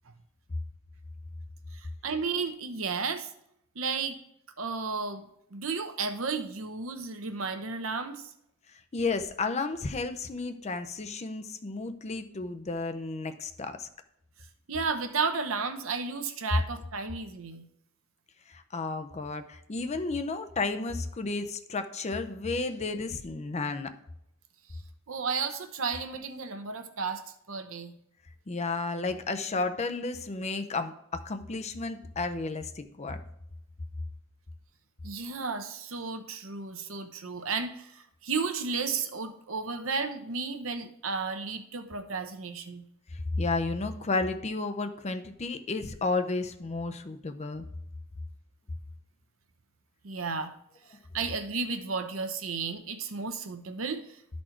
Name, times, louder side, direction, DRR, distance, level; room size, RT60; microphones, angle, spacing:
voice 1, 1.7-3.3 3.8-4.2 4.6-8.2 14.7-17.7 25.1-27.9 35.0-42.8 50.0-50.5 51.1-54.0, right 4 dB, 65° right, 8 dB, 0.9 m, -33 dB
voice 2, 8.9-13.9 18.5-23.9 28.5-33.2 43.4-47.6, left 3 dB, 30° left, 8 dB, 0.6 m, -32 dB
11.5 x 4.3 x 4.4 m, 0.76 s
head